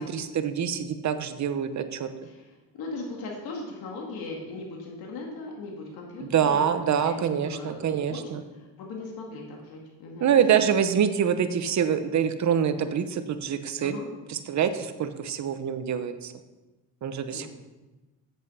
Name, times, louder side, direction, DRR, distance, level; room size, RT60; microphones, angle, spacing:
voice 1, 0.0-2.1 6.3-8.4 10.2-13.9 14.3-16.3 17.0-17.5, right 8 dB, 45° right, 10 dB, 0.9 m, -25 dB
voice 2, 2.2-6.7 7.4-8.2 8.5-10.3 13.8-14.1 17.3-17.5, left 3 dB, 65° left, -1 dB, 2.2 m, -39 dB
8.4 x 7.5 x 5.6 m, 1.1 s
cardioid pair, 100°, 39 cm